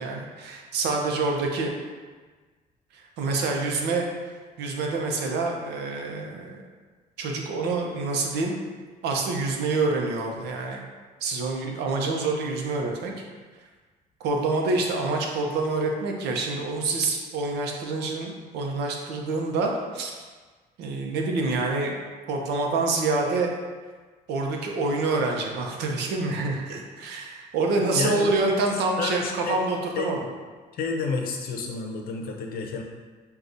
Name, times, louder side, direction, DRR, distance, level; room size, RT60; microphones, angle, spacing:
voice 1, 0.0-1.7 2.9-4.1 4.6-6.6 7.2-8.5 9.0-10.8 11.2-13.1 14.2-20.1 20.8-21.9 22.3-23.5 24.3-30.2, right 3 dB, 80° right, 1 dB, 0.7 m, -27 dB
voice 2, 27.7-28.3 29.0-29.6 30.0-30.2 30.7-32.8, left 4 dB, 60° left, 2 dB, 0.7 m, -30 dB
6.3 x 2.3 x 2.6 m, 1.4 s
cardioid pair, 110°, 17 cm